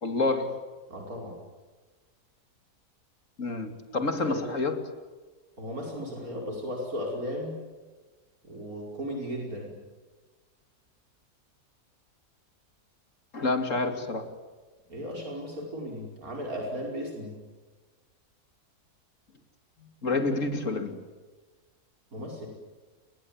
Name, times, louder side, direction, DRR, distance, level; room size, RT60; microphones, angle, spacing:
voice 1, 0.0-0.6 3.4-4.8 13.3-14.3 20.0-21.0, left 3 dB, 55° left, 7 dB, 3.0 m, -28 dB
voice 2, 0.9-1.4 4.3-4.4 5.6-7.6 8.4-9.8 14.9-17.4 22.1-22.5, equal, 65° right, 0 dB, 5.8 m, -35 dB
30.0 x 21.5 x 8.9 m, 1.3 s
omnidirectional pair, 1.6 m